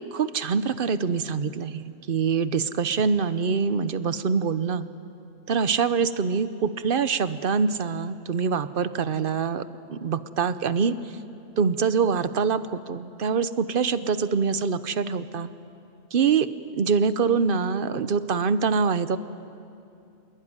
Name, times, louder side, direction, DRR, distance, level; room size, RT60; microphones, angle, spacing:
voice 1, 0.1-4.9 5.5-10.9 11.6-15.5 16.1-19.2, right 5 dB, 50° right, 13 dB, 0.9 m, -25 dB
25.5 x 21.5 x 9.6 m, 2.6 s
omnidirectional pair, 1.4 m